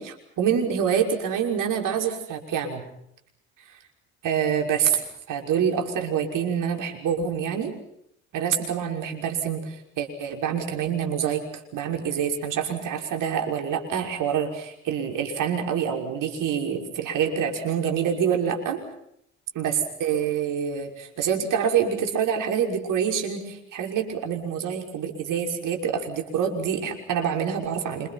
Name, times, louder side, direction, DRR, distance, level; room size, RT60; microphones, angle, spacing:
voice 1, 0.0-2.8 4.2-5.0 5.3-7.7 8.3-18.8 19.5-28.1, right 8 dB, 60° right, 2 dB, 6.0 m, -26 dB
27.5 x 26.5 x 5.9 m, 0.76 s
hypercardioid pair, 60°, 36 cm